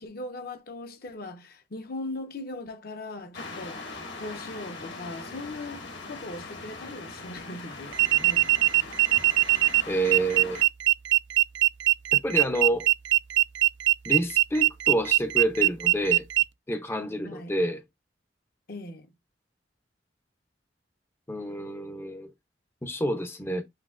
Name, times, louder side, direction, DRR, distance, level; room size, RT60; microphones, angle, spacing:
voice 1, 0.0-3.8 4.2-8.7 17.2-17.6 18.7-19.1, left 2 dB, 55° left, 0.8 m, -39 dB
sound 1, 3.3-10.7, left 3 dB, 70° left, 1.6 m, -41 dB
sound 2, 7.9-16.4, right 18 dB, 70° right, 0.3 m, -21 dB
voice 2, 9.9-10.6 12.1-12.9 14.1-16.3 16.7-17.8 21.3-22.3 22.8-23.6, right 1 dB, 15° left, 0.5 m, -28 dB
7.4 x 2.8 x 2.3 m
head